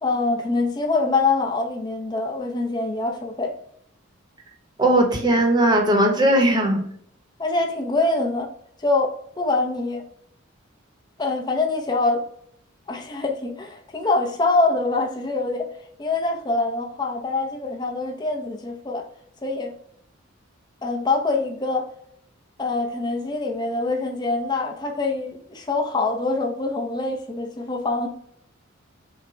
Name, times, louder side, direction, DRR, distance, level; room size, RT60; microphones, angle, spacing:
voice 1, 0.0-3.5 7.4-8.5 8.8-10.0 11.2-12.2 12.9-15.7 16.0-19.0 19.4-19.7 20.8-21.9 22.6-28.1, left 3 dB, 20° left, 0.6 m, -24 dB
voice 2, 4.8-6.8, right 1 dB, 20° right, 0.9 m, -18 dB
5.8 x 2.2 x 3.8 m
head